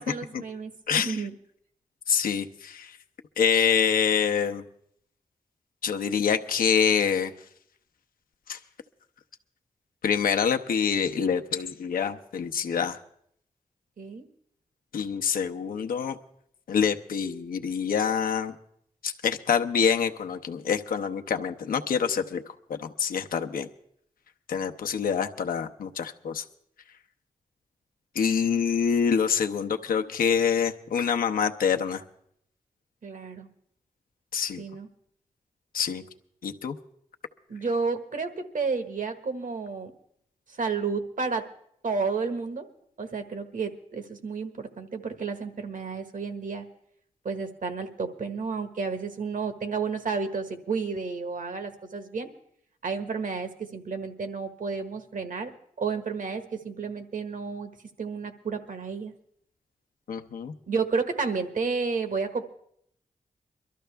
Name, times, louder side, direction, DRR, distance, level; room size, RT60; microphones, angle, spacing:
voice 1, 0.0-1.3 14.0-14.3 33.0-33.5 34.6-34.9 37.5-39.9 40.6-41.5 41.8-42.7 43.0-46.6 47.2-52.3 52.8-55.5 55.8-57.7 58.0-59.1 60.7-62.5, right 4 dB, 70° right, 8 dB, 1.4 m, -31 dB
voice 2, 0.9-1.2 2.1-3.0 3.4-4.6 5.8-7.3 8.5-8.6 10.0-13.0 14.9-16.2 16.7-18.5 19.0-22.4 22.7-23.7 24.5-26.4 28.1-32.0 34.3-34.6 35.7-36.0 36.4-36.8 60.1-60.5, left 7 dB, 90° left, 6 dB, 0.8 m, -26 dB
22.5 x 13.0 x 3.4 m, 0.71 s
cardioid pair, 45°, 14 cm